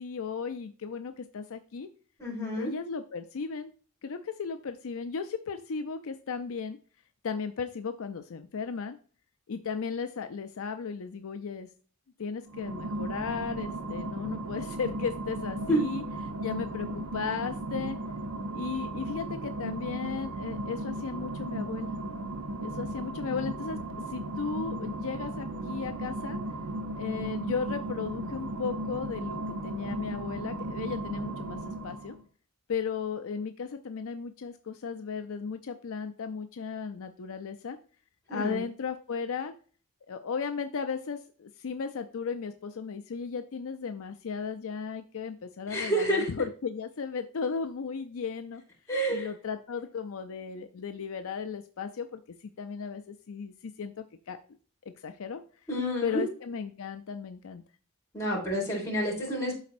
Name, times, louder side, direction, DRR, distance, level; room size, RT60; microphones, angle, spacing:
voice 1, 0.0-1.9 2.5-3.7 4.0-6.8 7.2-9.0 9.5-11.7 12.2-16.0 16.4-18.0 18.5-21.9 22.6-23.8 24.1-26.4 26.9-31.6 31.8-32.2 32.7-37.8 38.3-39.5 40.1-48.6 49.1-53.9 54.3-54.4 55.0-55.4 56.0-57.6, left 5 dB, 65° left, 8 dB, 0.5 m, -35 dB
voice 2, 2.2-2.7 15.7-15.8 38.3-38.6 45.7-46.3 48.9-49.3 55.7-56.3 58.1-59.5, right 1 dB, 15° left, -5 dB, 3.7 m, -29 dB
sound 1, 12.4-32.2, right 1 dB, 80° right, 0.9 m, -36 dB
12.0 x 4.1 x 2.6 m, 0.41 s
head